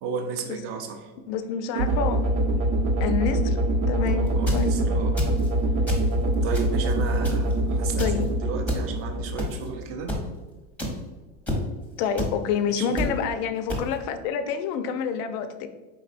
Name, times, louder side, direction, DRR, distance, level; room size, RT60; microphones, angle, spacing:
voice 1, 0.0-1.1 4.1-5.2 6.4-10.1 12.7-13.0, right 5 dB, 35° right, 4 dB, 0.5 m, -34 dB
voice 2, 1.3-2.2 3.0-3.6 3.9-4.8 8.0-8.3 12.0-15.7, left 7 dB, 45° left, 9 dB, 0.5 m, -28 dB
sound 1, 1.7-9.9, right 1 dB, 70° right, 0.9 m, -24 dB
sound 2, 4.3-4.7 5.2-5.5 5.9-6.1 6.5-6.9 7.2-7.5 8.0-8.2 8.7-8.8 9.4-9.6 10.1-10.2 10.8-10.9 11.5-11.6 12.2-12.3 13.0-13.1 13.7-13.8, left 1 dB, 5° left, 0.7 m, -28 dB
4.8 x 3.9 x 2.4 m, 1.2 s
supercardioid pair, 140°, 42 cm